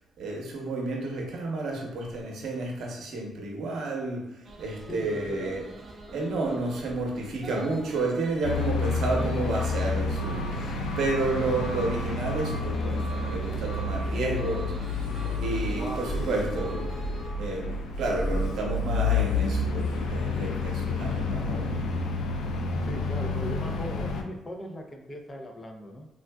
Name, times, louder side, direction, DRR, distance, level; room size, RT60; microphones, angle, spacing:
voice 1, 0.2-4.3 4.6-5.7 6.1-14.6 15.0-15.1 15.4-16.8 17.4-22.0, right 2 dB, 70° right, -1 dB, 0.8 m, -31 dB
sound 1, 4.4-17.3, right 2 dB, 40° right, 0.6 m, -45 dB
voice 2, 4.9-5.5 14.2-14.5 15.7-16.4 22.8-26.1, equal, 25° left, 2 dB, 0.5 m, -38 dB
sound 2, 8.4-24.2, left 3 dB, 85° left, 0.4 m, -29 dB
3.7 x 2.4 x 2.2 m, 0.88 s
cardioid pair, 90°, 0 cm